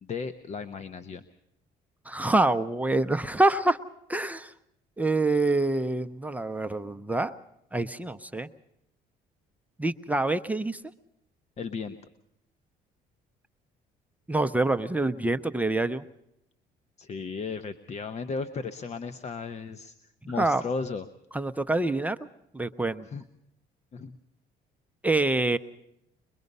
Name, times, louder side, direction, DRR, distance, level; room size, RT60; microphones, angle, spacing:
voice 1, 0.0-1.2 11.6-12.0 17.0-19.9 20.3-21.1 23.0-23.2 23.9-24.2, left 4 dB, 40° left, 11 dB, 1.0 m, -35 dB
voice 2, 2.1-3.8 4.1-4.5 5.0-7.4 7.7-8.5 9.8-10.8 14.3-16.0 20.4-20.6 21.3-22.2 22.5-23.1 25.0-25.6, right 2 dB, 10° right, 8 dB, 0.7 m, -26 dB
23.0 x 22.0 x 5.4 m, 0.80 s
cardioid pair, 110°, 17 cm